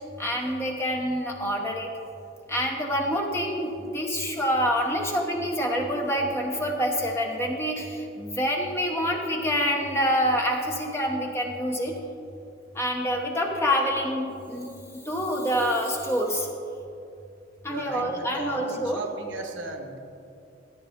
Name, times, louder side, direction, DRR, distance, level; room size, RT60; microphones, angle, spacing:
voice 1, 0.2-1.9 2.5-12.0 12.7-16.5 17.6-19.0, equal, 15° left, 0 dB, 1.0 m, -27 dB
voice 2, 17.7-20.0, right 2 dB, 80° right, 5 dB, 1.1 m, -36 dB
14.5 x 8.7 x 3.6 m, 2.6 s
head